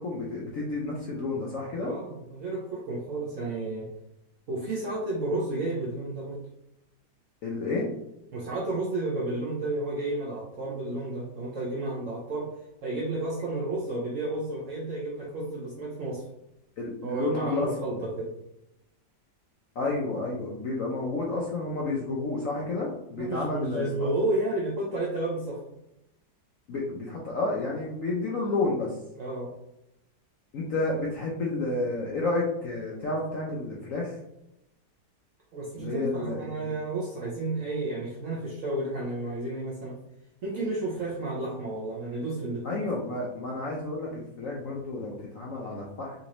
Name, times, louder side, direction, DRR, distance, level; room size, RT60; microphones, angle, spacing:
voice 1, 0.0-1.9 7.4-7.9 16.8-18.0 19.8-24.1 26.7-28.9 30.5-34.1 35.8-36.7 42.6-44.1 44.4-46.1, left 2 dB, 70° left, -3 dB, 0.8 m, -30 dB
voice 2, 1.8-3.9 4.5-6.4 8.3-12.5 12.8-16.2 17.0-18.3 23.1-25.6 29.2-29.5 35.5-40.0 40.4-42.8, right 2 dB, 65° right, -4 dB, 0.8 m, -31 dB
3.9 x 2.6 x 3.0 m, 0.83 s
omnidirectional pair, 2.0 m